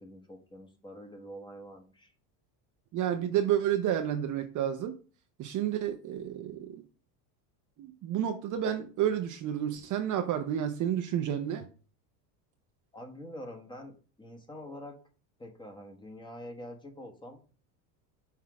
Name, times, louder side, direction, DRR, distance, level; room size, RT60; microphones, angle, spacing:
voice 1, 0.0-2.1 12.9-15.0 15.4-17.4, equal, 10° left, 4 dB, 1.2 m, -45 dB
voice 2, 2.9-5.0 5.4-6.8 7.8-11.7, right 10 dB, 40° right, 6 dB, 0.7 m, -30 dB
5.8 x 3.7 x 4.6 m, 0.37 s
supercardioid pair, 120°, 48 cm